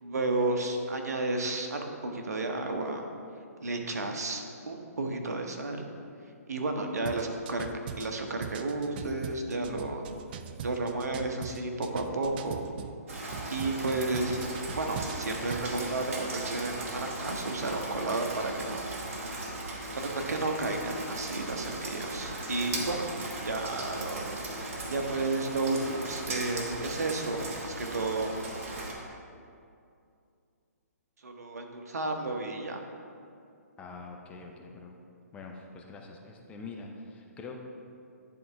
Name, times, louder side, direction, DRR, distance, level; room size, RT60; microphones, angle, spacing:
voice 1, 0.0-3.0 3.6-5.9 6.5-7.7 8.0-10.0 10.6-12.6 13.5-14.4 14.8-18.8 20.0-23.1 23.4-24.3 24.9-28.3 31.2-32.8, right 2 dB, 70° right, 4 dB, 1.0 m, -32 dB
sound 1, 7.0-12.9 13.3-15.8, right 8 dB, 35° right, 0.4 m, -41 dB
Rain, 13.1-28.9, right 2 dB, 50° right, 1.6 m, -37 dB
voice 2, 33.8-34.9 35.3-37.6, left 4 dB, 15° left, 1 dB, 0.6 m, -44 dB
10.5 x 3.8 x 4.6 m, 2.4 s
figure-of-eight pair, 135°, 9 cm